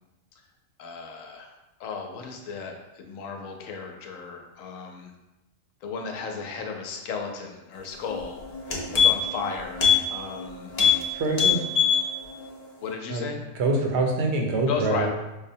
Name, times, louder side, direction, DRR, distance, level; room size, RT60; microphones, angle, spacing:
voice 1, 0.8-1.5 1.8-5.1 5.8-8.4 9.0-10.7 12.8-13.4 14.7-15.1, left 5 dB, 75° left, 3 dB, 1.0 m, -34 dB
sound 1, 8.1-8.2 8.5-9.4 9.8-10.0 10.3-10.4 10.7-11.0 11.3-12.0 12.4-12.5, left 7 dB, 45° left, 0.5 m, -20 dB
voice 2, 11.1-11.6 13.1-13.3 13.5-15.1, right 2 dB, 65° right, 1 dB, 0.8 m, -25 dB
5.1 x 2.1 x 2.6 m, 1.0 s
omnidirectional pair, 1.4 m